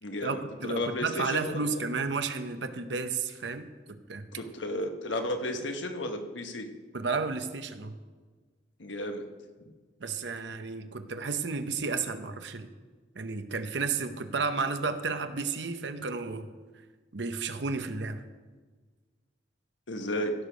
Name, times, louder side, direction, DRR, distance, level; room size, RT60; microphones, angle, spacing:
voice 1, 0.0-1.8 4.3-6.7 8.8-9.2 19.9-20.3, left 1 dB, 90° left, 5 dB, 1.2 m, -33 dB
voice 2, 0.6-3.7 4.1-4.2 6.9-7.9 10.0-12.7 13.2-16.5 17.1-18.2, right 4 dB, 70° right, 9 dB, 0.8 m, -32 dB
16.0 x 6.7 x 5.1 m, 1.4 s
head